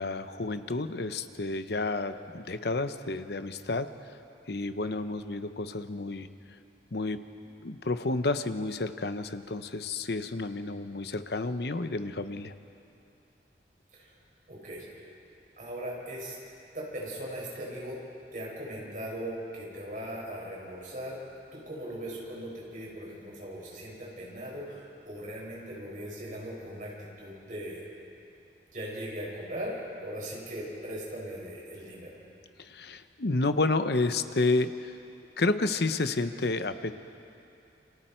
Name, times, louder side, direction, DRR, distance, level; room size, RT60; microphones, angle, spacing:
voice 1, 0.0-4.2 4.5-6.3 6.9-7.2 7.6-12.5 32.6-35.0 35.4-36.9, left 3 dB, 65° left, 10 dB, 0.9 m, -30 dB
voice 2, 14.5-15.1 15.6-16.4 16.7-18.0 18.3-21.2 21.5-27.9 28.7-32.2, equal, 45° right, -4 dB, 6.0 m, -39 dB
28.5 x 26.0 x 4.5 m, 2.7 s
head